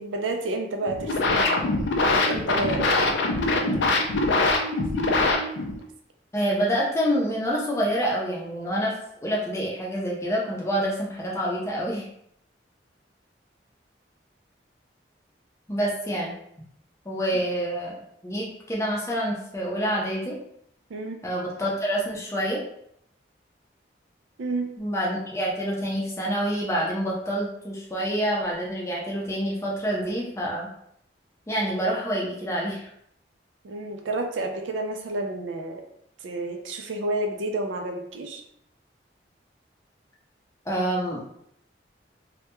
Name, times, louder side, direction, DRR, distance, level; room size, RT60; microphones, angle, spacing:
voice 1, 0.0-3.2 3.6-4.0 17.3-17.4 20.9-21.3 24.4-24.7 33.6-35.8 36.2-38.4, right 2 dB, 85° right, 3 dB, 0.4 m, -31 dB
sound 1, 0.8-5.8, left 2 dB, 70° left, 0.4 m, -23 dB
voice 2, 6.3-8.9 9.2-12.1 15.7-16.3 17.1-18.0 18.2-20.4 21.2-22.6 24.8-30.7 31.5-32.9 40.7-41.2, equal, 15° left, -4 dB, 0.5 m, -27 dB
2.2 x 2.1 x 2.9 m, 0.72 s
head